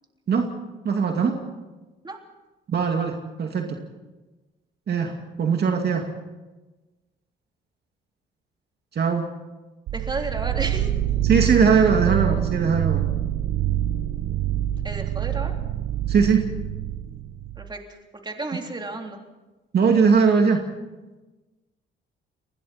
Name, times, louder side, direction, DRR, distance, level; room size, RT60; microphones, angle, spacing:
voice 1, 0.8-1.4 2.7-3.8 4.9-5.1 5.4-6.1 8.9-9.2 11.2-13.0 16.1-16.5 19.7-20.6, right 5 dB, 55° right, 3 dB, 2.4 m, -20 dB
voice 2, 9.9-10.9 14.8-15.5 17.6-17.8 18.2-19.2, right 2 dB, 20° right, 2 dB, 3.5 m, -32 dB
sound 1, 9.9-17.7, right 12 dB, 75° right, 0.8 m, -26 dB
30.0 x 21.0 x 4.4 m, 1.2 s
cardioid pair, 90°, 20 cm